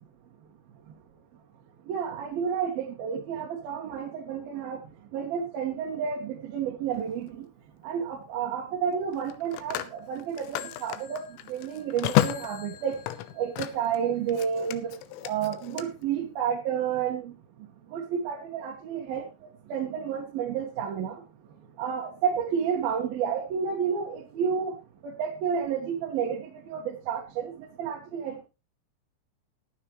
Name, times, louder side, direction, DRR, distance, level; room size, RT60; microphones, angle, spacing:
voice 1, 1.9-4.8 5.1-7.4 7.8-11.2 11.5-12.9 13.4-14.9 15.2-17.3 17.9-19.2 19.7-21.2 21.8-24.8 25.0-27.5 27.8-28.4, right 7 dB, 60° right, 2 dB, 3.1 m, -30 dB
Telephone, 6.9-7.2 9.1-14.0 14.3-15.8, left 15 dB, 85° left, 3.4 m, -32 dB
21.0 x 7.2 x 3.1 m, 0.29 s
omnidirectional pair, 5.7 m